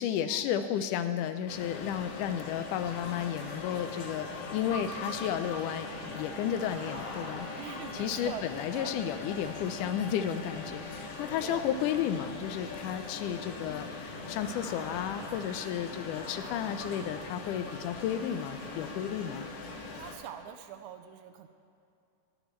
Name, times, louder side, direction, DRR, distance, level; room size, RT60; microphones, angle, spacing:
voice 1, 0.0-7.5 7.9-19.5, left 9 dB, 80° left, 10 dB, 2.1 m, -33 dB
sound 1, 1.5-20.1, left 3 dB, 60° left, 1.8 m, -41 dB
sound 2, 5.2-16.8, left 2 dB, 40° left, 0.8 m, -50 dB
voice 2, 7.6-9.0 11.4-11.7 13.7-13.9 19.9-21.5, right 9 dB, 80° right, 8 dB, 1.8 m, -44 dB
22.0 x 10.5 x 3.1 m, 2.6 s
omnidirectional pair, 3.8 m